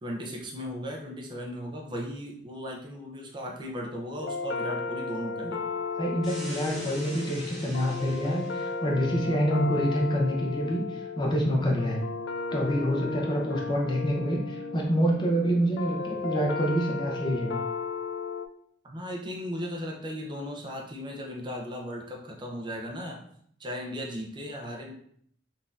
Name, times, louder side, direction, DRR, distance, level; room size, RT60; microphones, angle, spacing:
voice 1, 0.0-5.6 18.8-23.2 23.6-24.9, equal, 25° right, -1 dB, 0.5 m, -36 dB
sound 1, 4.2-18.5, left 4 dB, 75° left, 0.3 m, -34 dB
voice 2, 6.0-12.0 12.5-17.6, equal, 25° left, -1 dB, 0.6 m, -27 dB
sound 2, 6.2-8.7, equal, ahead, 1.0 m, -42 dB
3.9 x 2.6 x 2.4 m, 0.65 s
head